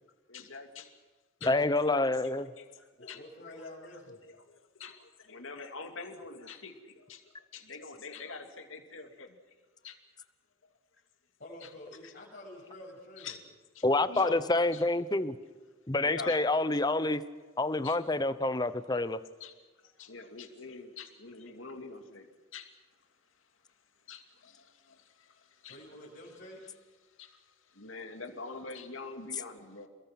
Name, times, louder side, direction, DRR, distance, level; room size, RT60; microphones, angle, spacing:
voice 1, 0.3-1.0 1.4-1.6 1.8-1.9 2.2-3.2 4.1-4.2 4.5-9.4 9.8-10.0 11.6-11.7 12.0-12.1 13.2-13.4 13.7-14.4 14.7-14.8 16.0-16.4 17.8-18.0 19.4-19.5 19.8-22.7 24.1-25.8 27.2-29.9, left 4 dB, 85° left, 5 dB, 2.5 m, -45 dB
voice 2, 1.4-2.5 13.8-15.4 15.9-17.2 17.6-19.2, left 2 dB, 20° left, 13 dB, 0.9 m, -27 dB
voice 3, 3.0-4.2 11.4-13.4 25.3-26.7, left 1 dB, 50° left, -6 dB, 7.1 m, -48 dB
29.0 x 21.5 x 6.0 m, 1.3 s
head